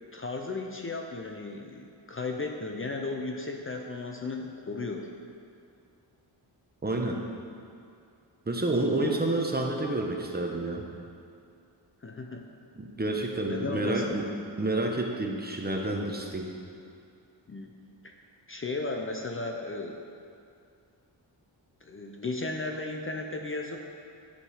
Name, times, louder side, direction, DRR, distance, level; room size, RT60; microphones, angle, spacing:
voice 1, 0.1-5.1 12.0-12.5 13.4-14.0 17.5-17.7 18.0-18.1 18.5-20.0 21.8-23.8, left 3 dB, 30° left, 2 dB, 0.6 m, -35 dB
voice 2, 6.8-7.2 8.5-10.8 12.7-14.2 14.6-16.5, right 2 dB, 20° right, 1 dB, 0.9 m, -29 dB
10.5 x 5.1 x 4.9 m, 2.5 s
wide cardioid pair, 105°, 43 cm